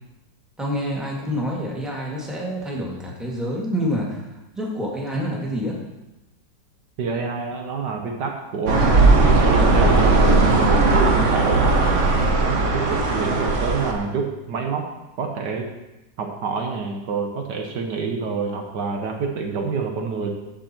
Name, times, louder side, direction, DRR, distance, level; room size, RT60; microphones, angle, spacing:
voice 1, 0.6-4.3 4.6-5.7, equal, ahead, -3 dB, 1.8 m, -27 dB
voice 2, 7.0-11.7 12.4-14.9 15.2-15.7 16.2-20.3, right 4 dB, 70° right, 3 dB, 1.5 m, -27 dB
sound 1, 8.7-13.9, right 3 dB, 45° right, 1.3 m, -17 dB
14.5 x 5.4 x 4.4 m, 0.99 s
omnidirectional pair, 2.0 m